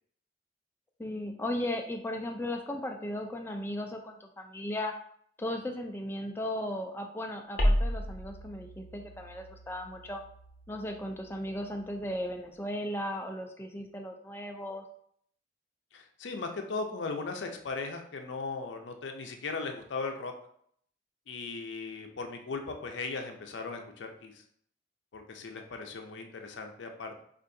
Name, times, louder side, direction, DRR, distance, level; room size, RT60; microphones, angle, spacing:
voice 1, 1.0-4.9 5.4-10.2 10.7-14.8, left 1 dB, 15° left, 3 dB, 0.3 m, -36 dB
sound 1, 7.6-12.4, equal, 50° left, 0.6 m, -34 dB
voice 2, 15.9-20.3 21.3-24.4 25.1-27.2, left 4 dB, 90° left, 4 dB, 0.5 m, -38 dB
4.5 x 2.5 x 2.6 m, 0.65 s
head